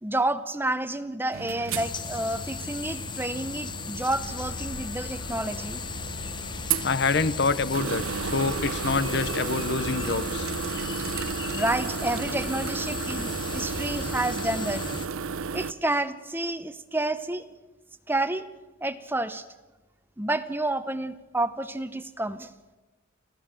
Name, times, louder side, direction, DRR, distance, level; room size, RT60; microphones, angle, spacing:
voice 1, 0.0-5.8 11.5-14.8 15.5-17.5 18.1-18.5 18.8-19.4 20.2-22.5, right 2 dB, 10° right, 11 dB, 0.8 m, -29 dB
sound 1, 1.3-15.7, right 6 dB, 80° right, 0.7 m, -34 dB
sound 2, 1.7-15.1, left 5 dB, 20° left, 0.7 m, -37 dB
sound 3, 4.1-14.2, left 1 dB, 80° left, 2.3 m, -42 dB
voice 2, 6.8-10.5, left 4 dB, 50° left, 15 dB, 0.7 m, -26 dB
27.0 x 16.5 x 7.6 m, 1.2 s
head